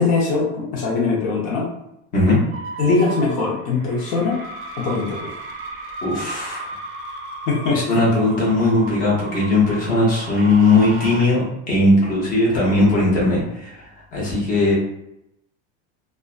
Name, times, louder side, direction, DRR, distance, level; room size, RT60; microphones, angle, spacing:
voice 1, 0.0-1.7 2.8-4.4 4.8-5.3 7.5-7.9 12.5-12.6, left 4 dB, 55° left, -4 dB, 0.7 m, -21 dB
sound 1, 2.5-11.2, right 2 dB, 40° right, 0.5 m, -35 dB
voice 2, 6.0-6.7 7.7-13.8 14.1-14.8, left 2 dB, 25° left, -5 dB, 0.7 m, -18 dB
2.4 x 2.1 x 2.4 m, 0.83 s
cardioid pair, 155°, 33 cm